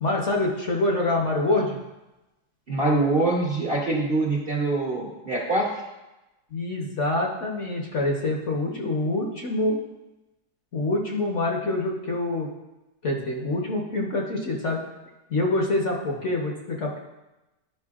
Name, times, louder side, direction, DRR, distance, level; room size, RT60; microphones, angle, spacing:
voice 1, 0.0-1.8 6.5-9.8 10.7-12.5 13.0-14.8 15.3-17.0, left 2 dB, 50° left, -1 dB, 1.2 m, -26 dB
voice 2, 2.7-5.7, right 2 dB, 40° right, -3 dB, 1.0 m, -24 dB
12.0 x 5.5 x 2.4 m, 1.0 s
omnidirectional pair, 1.9 m